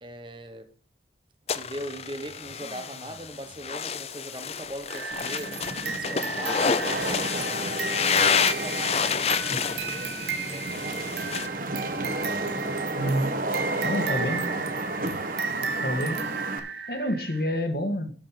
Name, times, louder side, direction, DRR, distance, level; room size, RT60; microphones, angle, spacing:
voice 1, 0.0-0.7 1.5-5.6 6.0-11.1, right 1 dB, 25° right, 1.1 m, -41 dB
sound 1, 1.5-11.5, left 6 dB, 35° left, 0.6 m, -29 dB
sound 2, 4.9-17.5, right 6 dB, 70° right, 0.8 m, -35 dB
Wind / Rain, 5.1-16.6, right 2 dB, 50° right, 1.3 m, -32 dB
voice 2, 13.0-13.4 13.8-14.7 15.8-16.2 16.9-18.1, equal, 60° left, 1.7 m, -28 dB
12.5 x 5.4 x 5.9 m
head